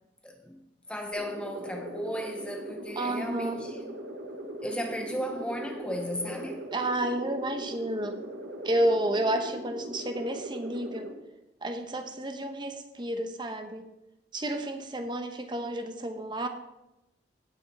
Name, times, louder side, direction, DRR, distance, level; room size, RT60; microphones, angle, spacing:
voice 1, 0.2-0.6 0.9-3.8 4.6-6.7, equal, 5° left, 0.7 m, -35 dB
sound 1, 1.1-11.1, right 1 dB, 75° right, 1.3 m, -40 dB
voice 2, 3.0-3.6 6.7-8.2 8.6-11.1 11.6-13.9 14.3-16.5, right 1 dB, 25° right, 0.9 m, -30 dB
16.5 x 6.4 x 4.1 m
head